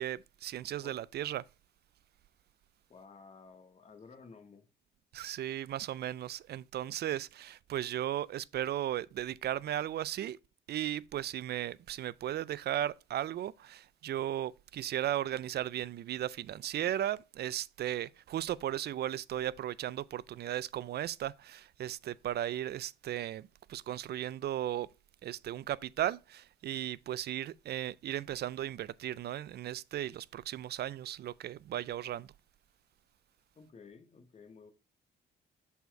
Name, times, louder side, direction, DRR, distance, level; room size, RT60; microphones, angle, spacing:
voice 1, 0.0-1.4 5.1-10.4 10.7-24.9 25.2-32.3, right 12 dB, 55° right, 0.4 m, -36 dB
voice 2, 2.9-4.7 33.5-34.7, left 5 dB, 35° left, 1.0 m, -54 dB
6.8 x 4.2 x 4.5 m
cardioid pair, 90°, 20 cm